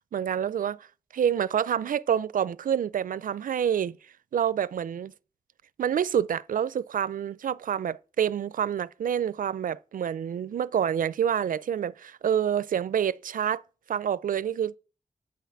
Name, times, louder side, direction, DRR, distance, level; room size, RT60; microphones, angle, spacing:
voice 1, 0.1-0.8 1.1-4.0 4.3-5.1 5.8-13.6 13.9-14.7, right 9 dB, 70° right, 0.4 m, -27 dB
8.9 x 5.7 x 7.2 m
wide cardioid pair, 90°, 14 cm